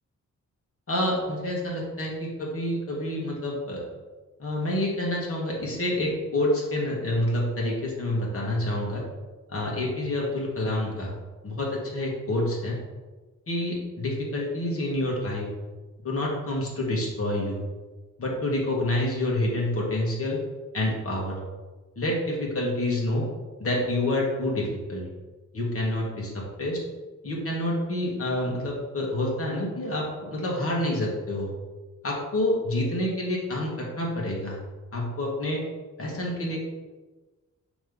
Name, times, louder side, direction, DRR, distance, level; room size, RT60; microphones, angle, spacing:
voice 1, 0.9-3.8 4.4-9.0 9.5-11.1 11.4-12.8 13.5-15.5 16.0-17.6 18.2-20.4 20.7-21.4 22.0-23.3 23.6-25.1 25.5-26.8 27.2-31.5 32.0-34.6 34.9-35.6 36.0-36.6, left 1 dB, 45° left, -3 dB, 1.8 m, -28 dB
5.9 x 3.2 x 5.4 m, 1.2 s
wide cardioid pair, 115°, 32 cm